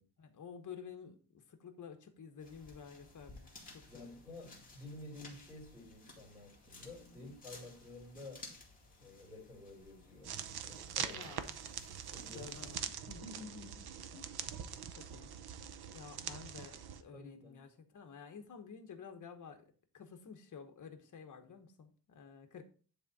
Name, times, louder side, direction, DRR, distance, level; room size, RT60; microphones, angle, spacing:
voice 1, 0.2-4.2 7.0-7.2 11.1-11.6 12.3-14.7 15.0-15.3 15.9-22.6, left 6 dB, 50° left, 6 dB, 1.2 m, -52 dB
sound 1, 2.4-12.8, left 3 dB, 20° left, 2.2 m, -57 dB
voice 2, 3.9-8.5 9.0-11.3 12.1-12.6 17.1-17.6, left 2 dB, 5° right, -2 dB, 3.4 m, -52 dB
sound 2, 10.2-17.0, right 8 dB, 75° right, 0.7 m, -43 dB
10.5 x 3.7 x 4.2 m, 0.40 s
wide cardioid pair, 170°, 39 cm